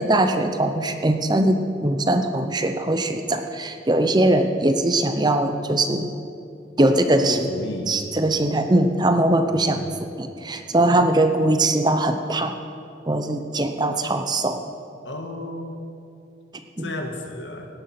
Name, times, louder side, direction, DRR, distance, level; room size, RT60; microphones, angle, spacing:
voice 1, 0.0-6.1 6.8-7.5 7.9-9.8 10.2-12.5 13.1-14.6 16.8-16.9, right 1 dB, 20° right, 7 dB, 0.7 m, -21 dB
voice 2, 7.3-8.0 9.5-9.9 15.1-15.8 16.8-17.7, left 1 dB, 75° left, 4 dB, 1.8 m, -33 dB
17.5 x 11.0 x 6.0 m, 2.6 s
head